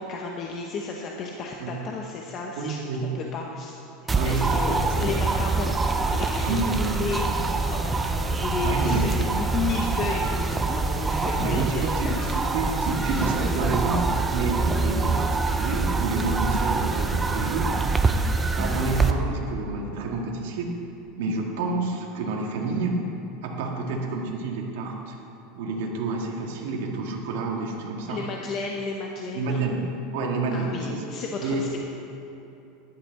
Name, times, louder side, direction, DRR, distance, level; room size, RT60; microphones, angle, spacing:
voice 1, 0.0-2.9 3.1-3.8 4.2-12.6 13.0-13.3 13.6-13.7 28.1-29.6 30.5-31.8, left 4 dB, 25° left, 0 dB, 0.8 m, -33 dB
voice 2, 2.6-3.1 4.1-5.1 6.4-6.7 8.6-9.0 11.4-12.1 12.5-14.0 14.3-17.7 18.5-20.7 21.2-23.0 23.4-25.2 25.5-28.2 29.3-29.8 30.1-31.0 31.4-31.6, right 3 dB, 65° right, -1 dB, 2.2 m, -29 dB
sound 1, 4.1-19.1, right 3 dB, 10° right, 0.5 m, -25 dB
14.0 x 11.5 x 4.2 m, 2.9 s
supercardioid pair, 175°, 0 cm